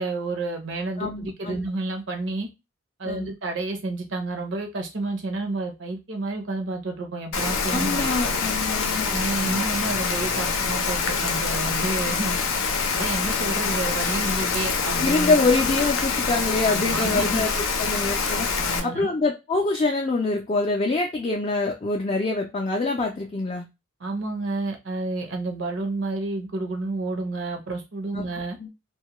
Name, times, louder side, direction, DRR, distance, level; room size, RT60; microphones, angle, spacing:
voice 1, 0.0-2.5 3.0-8.4 9.1-12.4 12.9-15.4 16.7-17.5 18.6-19.1 24.0-28.6, right 2 dB, 65° right, 4 dB, 0.7 m, -30 dB
voice 2, 1.0-1.6 3.0-3.3 7.7-9.1 15.0-18.5 18.8-23.7 28.1-28.3 28.6-28.7, left 3 dB, 30° left, 0 dB, 0.3 m, -25 dB
Rain, 7.3-18.8, left 5 dB, 85° left, 0.5 m, -25 dB
2.3 x 2.1 x 2.9 m, 0.24 s
head